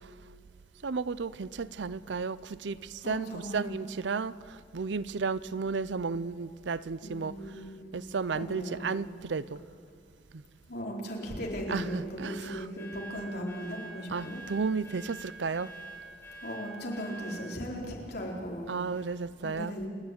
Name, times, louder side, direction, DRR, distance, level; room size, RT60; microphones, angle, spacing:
voice 1, 0.8-2.4 2.6-2.8 3.0-4.3 4.7-7.3 7.9-9.6 11.7-12.7 14.1-15.7 18.7-19.7, right 4 dB, 80° right, 0.6 m, -33 dB
voice 2, 3.0-3.7 7.0-8.0 8.3-9.0 10.7-14.4 16.4-18.7 19.4-19.9, equal, 60° left, 4.4 m, -37 dB
sound 1, 12.8-17.4, right 2 dB, 15° left, 5.5 m, -45 dB
29.0 x 11.5 x 9.6 m
head